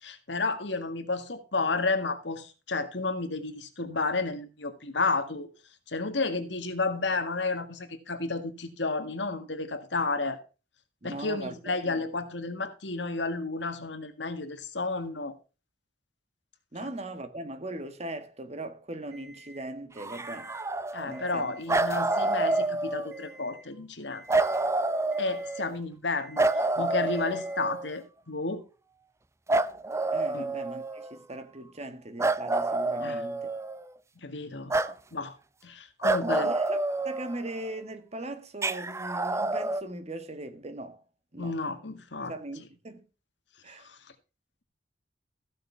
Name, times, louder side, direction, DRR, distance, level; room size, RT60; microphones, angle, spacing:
voice 1, 0.0-5.5 5.9-10.4 11.0-15.4 16.8-16.9 20.9-24.2 25.2-26.5 26.8-28.6 30.3-30.5 33.0-33.2 34.2-34.7 35.1-35.4 35.6-36.5 41.4-42.3 43.8-44.0, left 3 dB, 80° left, 1.8 m, -31 dB
voice 2, 11.0-12.0 16.7-20.5 21.0-21.6 30.1-33.5 34.8-35.0 36.2-36.8 37.0-41.0 41.3-41.5 42.3-43.0 43.6-43.9, right 1 dB, 35° right, 1.6 m, -39 dB
Alarm, 19.1-19.7 20.1-20.7 21.0-21.7 22.1-22.7 23.1-23.7 24.1-24.7 25.1-25.7 26.1-26.7 27.1-27.7, right 1 dB, 60° right, 7.9 m, -52 dB
sound 1, 20.0-21.3 21.7-23.3 24.3-25.7 26.4-28.0 29.5-31.2 32.2-33.9 34.7-34.9 36.0-37.7 38.6-39.8, right 2 dB, 15° right, 0.5 m, -28 dB
15.0 x 6.5 x 4.6 m
head